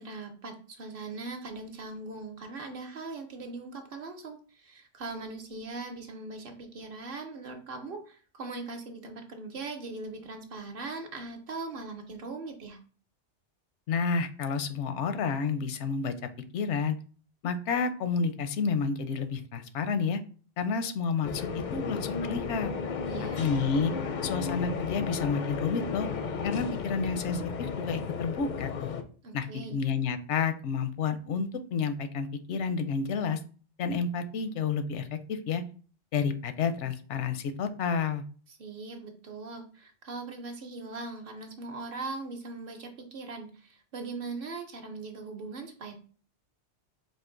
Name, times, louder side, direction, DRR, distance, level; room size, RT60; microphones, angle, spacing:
voice 1, 0.0-12.8 23.0-23.5 29.2-29.8 38.6-45.9, right 3 dB, 55° right, 5 dB, 0.8 m, -40 dB
voice 2, 13.9-16.1 16.5-17.0 17.4-20.2 20.6-22.7 23.4-23.9 24.2-26.1 26.4-28.9 29.3-33.4 33.8-35.6 36.1-38.2, left 5 dB, 85° left, 9 dB, 0.9 m, -30 dB
sound 1, 21.2-29.0, left 5 dB, 60° left, 0.5 m, -34 dB
4.4 x 2.6 x 3.7 m, 0.41 s
omnidirectional pair, 1.2 m